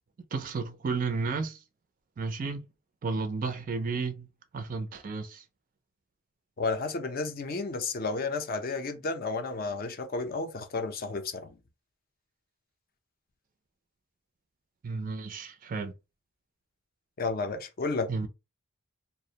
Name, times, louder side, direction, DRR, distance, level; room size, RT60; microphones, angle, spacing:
voice 1, 0.3-1.6 2.2-2.7 3.0-4.3 4.5-5.4 14.8-15.9 18.1-18.3, right 4 dB, 40° right, 0.3 m, -32 dB
voice 2, 6.6-11.6 17.2-18.1, left 3 dB, 45° left, 0.4 m, -32 dB
2.4 x 2.1 x 2.7 m
head